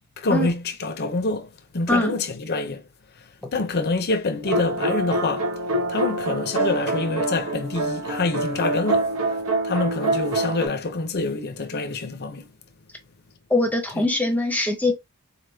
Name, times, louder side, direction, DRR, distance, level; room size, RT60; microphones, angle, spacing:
voice 1, 0.2-2.8 3.5-5.5 5.9-9.1 9.6-12.5 14.0-14.1, left 3 dB, 45° left, 0.6 m, -26 dB
sound 1, 4.4-10.7, right 2 dB, 70° right, 0.9 m, -25 dB
voice 2, 13.5-14.9, left 2 dB, 5° left, 0.8 m, -22 dB
4.1 x 3.4 x 2.7 m
head